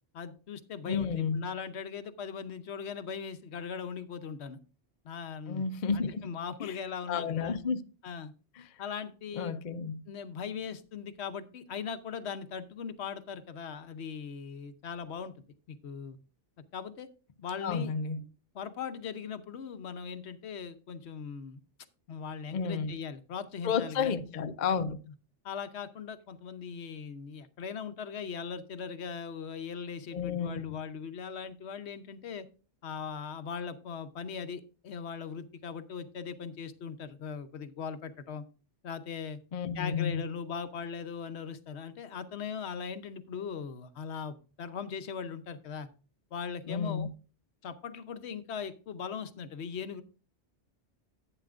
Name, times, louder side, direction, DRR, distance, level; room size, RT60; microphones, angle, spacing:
voice 1, 0.1-4.6 5.0-5.6 5.9-7.6 8.0-8.3 8.8-9.6 10.1-15.3 15.7-16.2 16.7-17.1 17.4-17.9 18.5-21.6 22.1-24.2 25.4-32.5 32.8-38.4 38.8-39.4 39.7-45.9 46.3-47.1 47.6-50.0, left 6 dB, 70° left, 1.0 m, -39 dB
voice 2, 0.9-1.5 5.5-6.3 6.6-6.8 7.1-7.8 8.6-8.7 9.3-10.0 17.6-18.2 22.5-22.9 23.6-25.0 30.1-30.8 39.5-40.3 46.7-47.1, left 6 dB, 50° left, 0.6 m, -31 dB
11.0 x 9.0 x 2.5 m
omnidirectional pair, 1.2 m